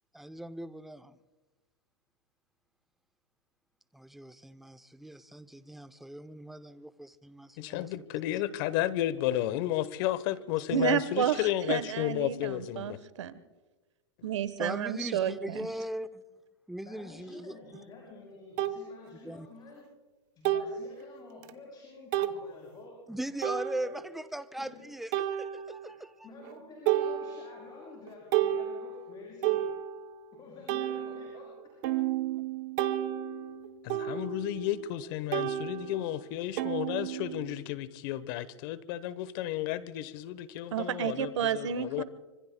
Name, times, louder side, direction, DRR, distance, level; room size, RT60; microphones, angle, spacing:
voice 1, 0.1-1.2 3.9-7.9 8.3-8.4 10.6-10.7 14.6-16.2 16.7-17.6 19.2-19.5 23.1-25.1 25.4-26.3, right 1 dB, ahead, 0.5 m, -39 dB
voice 2, 7.6-13.0 33.8-42.0, left 13 dB, 50° left, 1.0 m, -32 dB
voice 3, 10.7-13.4 14.2-15.7 40.7-42.0, right 9 dB, 75° right, 1.2 m, -31 dB
voice 4, 16.8-19.9 20.3-23.0 23.8-23.9 24.6-24.9 25.8-26.0 26.2-29.6 30.3-31.5, left 3 dB, 25° left, 6.4 m, -50 dB
sound 1, 17.7-17.8 18.6-18.8 20.4-20.9 21.4-21.5 22.1-22.4 23.4-24.1 25.1-26.0 26.4-26.6 26.9-27.7 28.1-30.2 30.7-35.0 35.3-37.6, right 12 dB, 45° right, 1.0 m, -32 dB
25.0 x 25.0 x 2.2 m
hypercardioid pair, 130°, 15 cm